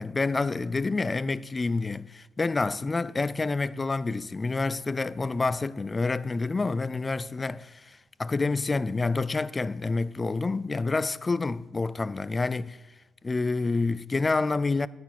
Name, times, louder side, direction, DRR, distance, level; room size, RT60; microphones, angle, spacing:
voice 1, 0.0-12.8 13.2-14.9, left 3 dB, 25° left, 0.4 m, -28 dB
9.6 x 9.5 x 7.8 m
cardioid pair, 90°, 0 cm